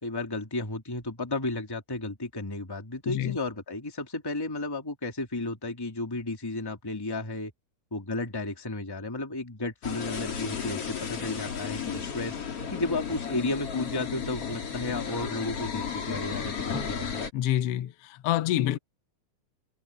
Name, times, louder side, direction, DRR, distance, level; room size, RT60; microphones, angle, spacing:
voice 1, 0.0-7.5 7.9-12.4 12.7-17.3, left 2 dB, 10° left, 2.2 m, -33 dB
voice 2, 3.1-3.4 17.3-18.8, left 12 dB, 65° left, 1.6 m, -27 dB
sound 1, 9.8-17.3, left 7 dB, 45° left, 3.8 m, -34 dB
omnidirectional pair, 4.0 m